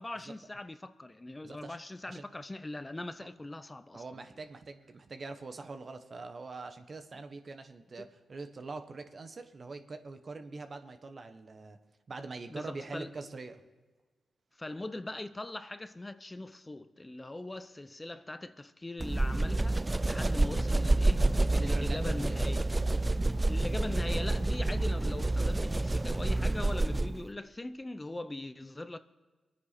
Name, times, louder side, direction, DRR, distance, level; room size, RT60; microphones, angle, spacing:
voice 1, 0.0-4.2 12.5-13.1 14.6-21.3 21.6-22.7 23.5-29.0, left 2 dB, 25° left, 0.7 m, -41 dB
voice 2, 1.4-1.8 2.1-2.2 3.9-11.8 12.1-13.6 21.5-22.4, right 3 dB, 50° right, 1.4 m, -43 dB
sound 1, 19.0-27.3, right 2 dB, 25° right, 0.4 m, -28 dB
23.0 x 9.6 x 4.4 m
supercardioid pair, 45°, 0 cm